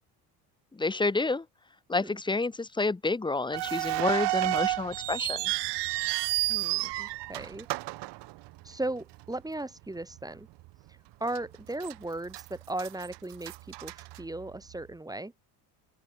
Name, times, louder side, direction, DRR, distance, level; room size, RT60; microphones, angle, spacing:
voice 1, 0.7-1.5 1.9-5.5, left 3 dB, 10° left, 0.9 m, -29 dB
sound 1, 3.5-8.8 9.1-9.2 10.0-10.2 10.6-10.7 11.3-11.9 12.3-14.8, right 20 dB, 65° right, 1.2 m, -31 dB
voice 2, 6.5-7.7 8.6-10.5 10.9-15.3, right 2 dB, 10° right, 1.7 m, -37 dB
open air
supercardioid pair, 90°, 44 cm